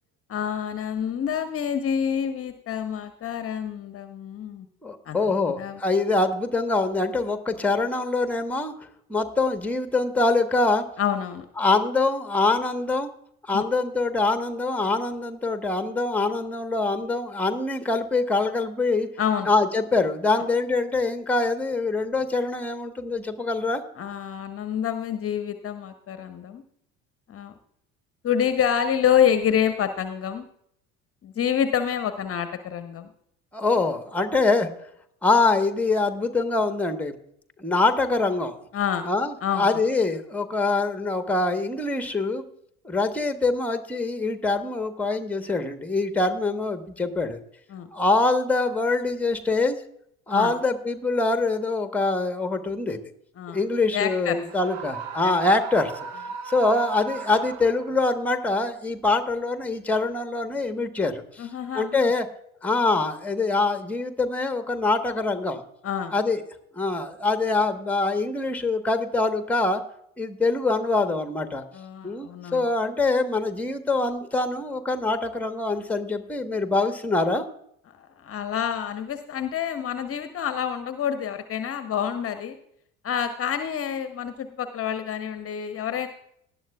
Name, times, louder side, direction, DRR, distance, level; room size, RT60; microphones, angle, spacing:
voice 1, 0.3-4.7 5.0-5.2 5.5-5.8 11.0-11.5 13.5-13.6 19.2-19.5 24.0-26.6 27.3-27.5 28.2-30.5 31.2-33.1 38.7-39.1 39.4-39.8 47.7-47.9 50.3-50.5 53.4-53.6 53.9-54.4 55.2-55.3 61.4-62.1 65.8-66.1 71.7-72.7 78.0-82.6 83.0-86.1, left 8 dB, 35° left, 9 dB, 0.9 m, -27 dB
voice 2, 4.8-8.7 9.1-10.8 11.6-13.1 13.5-19.1 19.5-23.8 33.5-34.7 35.2-37.1 37.6-38.6 39.0-42.4 42.8-47.4 47.9-49.8 50.3-53.0 53.5-55.9 56.5-61.5 61.7-62.3 62.6-65.6 66.1-66.4 66.8-69.8 70.2-71.6 72.0-77.4, left 3 dB, 5° left, 8 dB, 1.2 m, -24 dB
Screaming, 54.5-58.2, right 6 dB, 60° right, 1.1 m, -37 dB
18.5 x 11.5 x 2.4 m, 0.71 s
figure-of-eight pair, 60°, 41 cm